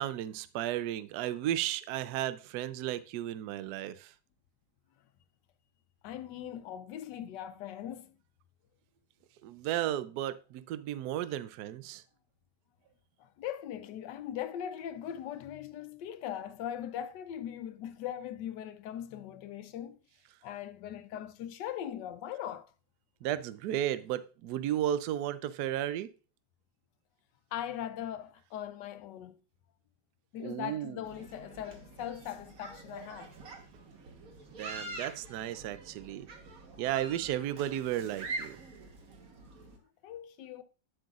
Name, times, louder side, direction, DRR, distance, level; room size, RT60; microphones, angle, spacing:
voice 1, 0.0-4.1 9.4-12.0 23.2-26.1 30.4-31.0 34.5-36.3 36.8-38.6, right 12 dB, 70° right, 1.0 m, -34 dB
voice 2, 6.0-8.2 13.2-20.0 20.4-22.7 27.5-29.4 30.3-33.3 40.0-40.6, left 10 dB, 75° left, 1.2 m, -40 dB
sound 1, 31.0-39.8, right 2 dB, 50° right, 1.6 m, -45 dB
9.4 x 7.7 x 2.4 m
omnidirectional pair, 2.0 m